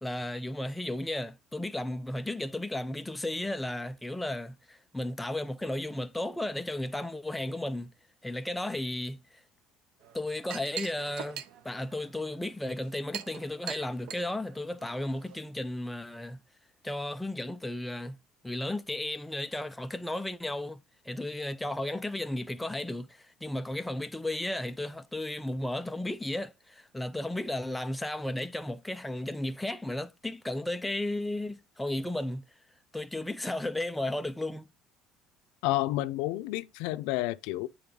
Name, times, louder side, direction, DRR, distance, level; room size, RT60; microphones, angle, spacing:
voice 1, 0.0-7.9 8.2-9.4 10.1-16.4 16.8-18.2 18.4-20.8 21.0-32.5 32.9-34.7, left 1 dB, 5° left, 0.4 m, -34 dB
Chink clink, 10.0-15.4, right 9 dB, 60° right, 0.8 m, -43 dB
voice 2, 35.6-37.7, left 16 dB, 85° left, 0.5 m, -30 dB
8.6 x 3.6 x 3.7 m
cardioid pair, 150°, 0 cm